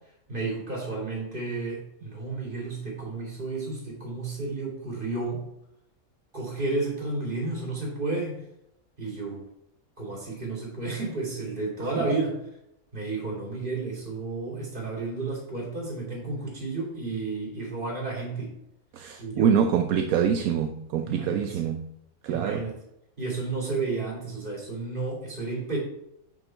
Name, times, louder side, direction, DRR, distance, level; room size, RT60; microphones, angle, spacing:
voice 1, 0.3-5.4 6.3-8.4 9.0-9.4 10.0-12.4 12.9-18.5 19.2-19.6 21.0-21.6 22.3-22.8 23.2-25.8, right 3 dB, 35° right, 2.7 m, -32 dB
voice 2, 18.9-21.9 22.2-22.7, right 8 dB, 75° right, 1.0 m, -25 dB
6.6 x 6.0 x 4.5 m
omnidirectional pair, 1.6 m